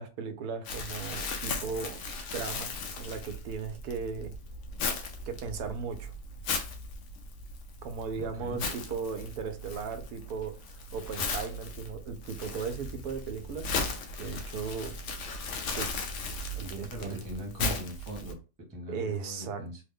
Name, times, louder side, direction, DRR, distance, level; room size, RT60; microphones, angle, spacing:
voice 1, 0.0-2.0 2.3-4.4 5.3-6.1 7.8-15.0 15.7-15.9 16.5-17.2 18.9-19.6, right 5 dB, 90° right, 1.2 m, -37 dB
Crumpling crinkling, 0.6-18.3, left 3 dB, 65° left, 0.8 m, -37 dB
voice 2, 8.2-8.6 16.9-18.4 18.7-19.8, equal, 15° right, 0.8 m, -40 dB
3.3 x 2.1 x 3.5 m
omnidirectional pair, 1.6 m